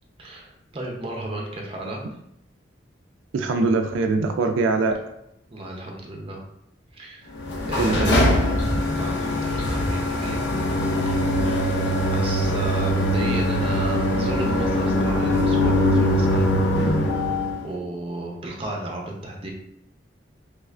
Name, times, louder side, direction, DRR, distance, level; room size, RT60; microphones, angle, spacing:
voice 1, 0.2-2.0 5.5-6.4 6.9-7.3 7.7-8.3 8.9-10.4 12.1-16.4 17.6-19.5, right 2 dB, 30° right, -1 dB, 0.6 m, -33 dB
voice 2, 3.3-5.0 7.8-8.3 8.6-8.8, right 3 dB, 85° right, 5 dB, 0.3 m, -22 dB
sound 1, 7.4-17.7, left 1 dB, 60° left, 0.6 m, -22 dB
3.2 x 2.4 x 3.2 m, 0.78 s
head